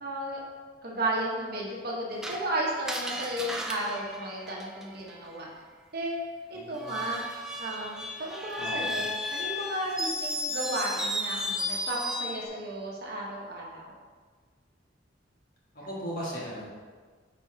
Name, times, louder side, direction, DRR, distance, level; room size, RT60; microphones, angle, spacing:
voice 1, 0.0-0.4 0.8-5.5 5.9-7.2 7.6-13.9, right 1 dB, 55° right, -3 dB, 1.2 m, -34 dB
Screech, 2.2-5.1 6.7-12.5, left 1 dB, 5° right, 0.4 m, -34 dB
voice 2, 6.5-7.1 8.6-9.0 15.9-16.7, equal, 50° left, -6 dB, 1.8 m, -37 dB
9.1 x 4.2 x 2.8 m, 1.5 s
head